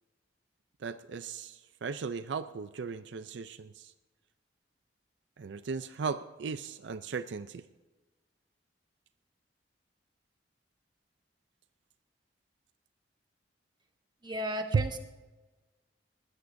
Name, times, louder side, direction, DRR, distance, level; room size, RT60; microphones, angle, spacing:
voice 1, 0.8-3.9 5.4-7.6 14.7-14.9, right 5 dB, 70° right, 12 dB, 0.4 m, -35 dB
voice 2, 14.2-15.0, equal, 25° right, 5 dB, 1.0 m, -34 dB
20.5 x 16.0 x 2.6 m, 1.2 s
head